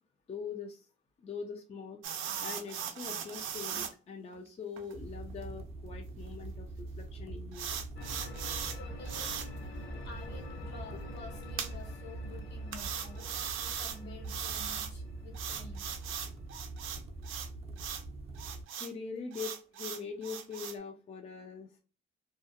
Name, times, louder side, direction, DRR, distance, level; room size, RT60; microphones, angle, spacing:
voice 1, 0.3-0.9 1.2-2.0 2.4-7.8 18.8-21.8, left 5 dB, 30° left, 3 dB, 0.4 m, -42 dB
sound 1, 2.0-3.9 4.3-4.4 4.8-4.9 5.4-5.5 7.5-8.8 9.0-9.5 11.6-11.7 12.7-14.0 14.2-14.9 15.3-17.5 17.8-18.0 18.4-18.9 19.3-20.8, right 8 dB, 90° right, 0.4 m, -38 dB
sound 2, 4.9-18.6, right 2 dB, 30° right, 0.5 m, -44 dB
sound 3, 8.0-16.8, left 2 dB, 90° left, 0.7 m, -48 dB
voice 2, 8.8-9.3 10.0-13.3 13.6-16.0, left 2 dB, 60° left, 3 dB, 1.1 m, -50 dB
2.3 x 2.1 x 2.7 m, 0.35 s
cardioid pair, 90°, 20 cm